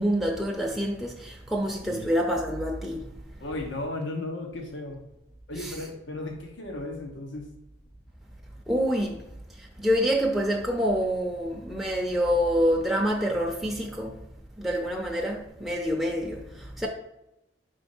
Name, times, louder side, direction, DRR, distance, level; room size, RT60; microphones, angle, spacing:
voice 1, 0.0-3.0 5.6-5.7 8.7-9.2 9.8-14.1 14.6-16.4 16.8-16.9, equal, ahead, 0.6 m, -26 dB
voice 2, 3.4-5.0 5.5-7.5 16.8-16.9, left 2 dB, 90° left, 1.0 m, -35 dB
5.1 x 3.5 x 5.3 m
head